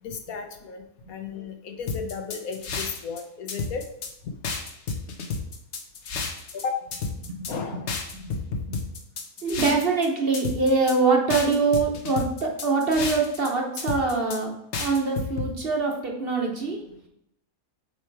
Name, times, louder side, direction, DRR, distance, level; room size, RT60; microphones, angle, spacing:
voice 1, 0.0-0.8 1.1-3.8 6.5-6.8 7.5-7.9, left 5 dB, 75° left, 4 dB, 1.3 m, -34 dB
sound 1, 1.9-3.2 3.5-4.1 4.4-6.6 6.9-7.5 7.9-10.1 10.3-10.9 11.3-13.5 13.8-14.4 14.7-15.5, left 4 dB, 55° left, 1.1 m, -31 dB
voice 2, 7.1-7.8 8.1-8.9 9.4-16.8, right 3 dB, 45° right, 1 dB, 1.0 m, -24 dB
7.7 x 3.1 x 4.6 m, 0.80 s
omnidirectional pair, 1.5 m